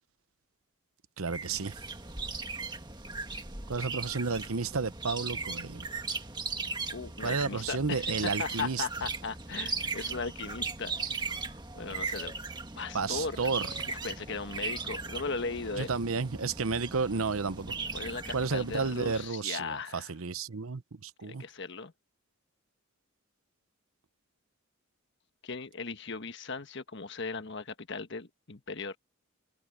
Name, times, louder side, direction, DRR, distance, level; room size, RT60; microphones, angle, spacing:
voice 1, 1.2-1.8 3.7-5.9 7.2-8.8 12.9-13.6 15.8-17.7 18.3-21.4, right 4 dB, 75° right, 0.9 m, -32 dB
sound 1, 1.3-19.3, right 4 dB, 20° right, 1.7 m, -38 dB
voice 2, 6.9-10.9 11.7-12.3 12.8-13.4 13.9-15.9 17.9-20.1 21.2-21.9 25.4-29.0, left 4 dB, 55° left, 1.3 m, -37 dB
head